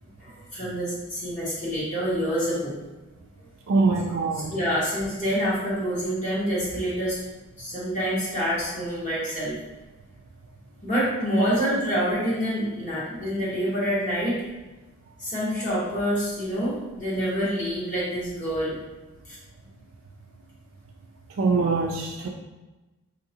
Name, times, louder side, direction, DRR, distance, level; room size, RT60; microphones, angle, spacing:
voice 1, 0.2-2.8 4.5-7.2 7.6-9.6 10.8-14.4 15.2-18.7 19.3-19.4, equal, 35° left, -8 dB, 1.3 m, -27 dB
voice 2, 3.7-4.5 11.4-11.5 21.4-22.3, right 3 dB, 65° right, 0 dB, 0.4 m, -23 dB
4.7 x 2.9 x 2.8 m, 1.1 s
head